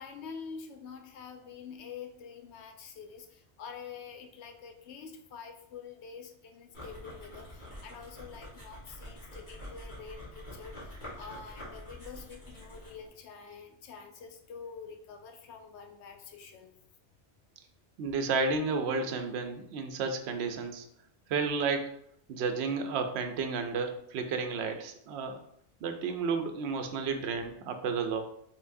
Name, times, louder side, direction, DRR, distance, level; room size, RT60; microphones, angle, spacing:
voice 1, 0.0-16.7, left 6 dB, 90° left, 5 dB, 0.9 m, -47 dB
sound 1, 6.7-13.1, equal, 45° left, 1.6 m, -46 dB
voice 2, 18.0-20.8 21.3-21.9 22.3-25.4 25.8-28.2, right 4 dB, 75° right, 6 dB, 0.8 m, -32 dB
4.5 x 3.5 x 2.6 m, 0.70 s
omnidirectional pair, 1.1 m